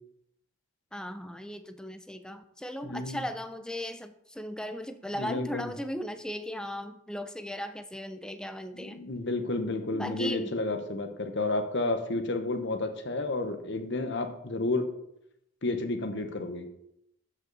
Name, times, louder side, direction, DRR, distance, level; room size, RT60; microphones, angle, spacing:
voice 1, 0.9-9.0 9.9-10.6, equal, 5° left, 8 dB, 0.5 m, -37 dB
voice 2, 2.8-3.2 5.2-5.7 8.8-14.8 15.6-16.7, left 2 dB, 55° left, 6 dB, 1.1 m, -31 dB
13.0 x 5.4 x 4.1 m, 0.78 s
head